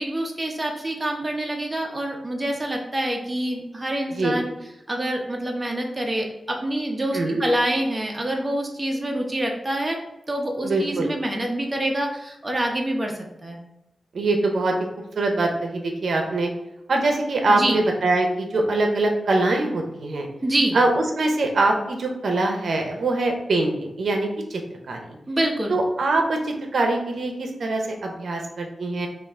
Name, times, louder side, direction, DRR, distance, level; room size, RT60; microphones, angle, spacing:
voice 1, 0.0-4.5 4.9-10.0 10.3-13.1 13.4-13.6 17.5-17.8 20.4-20.8 25.3-25.8, right 1 dB, 20° right, 0 dB, 0.9 m, -26 dB
voice 2, 10.6-11.1 14.1-14.8 15.2-16.5 16.9-20.3 20.7-24.6 24.9-25.2 25.7-29.1, right 2 dB, 75° right, 3 dB, 0.7 m, -23 dB
5.6 x 2.5 x 3.6 m, 0.93 s
wide cardioid pair, 90°, 0 cm